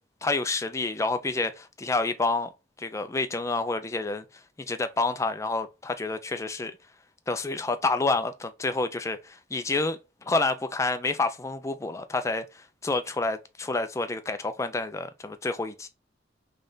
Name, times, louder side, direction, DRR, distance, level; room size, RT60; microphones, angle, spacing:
voice 1, 0.2-2.5 2.8-4.2 4.7-6.7 7.3-10.0 10.3-12.4 12.8-15.9, left 3 dB, 15° left, 0.4 m, -28 dB
3.3 x 3.3 x 3.8 m
head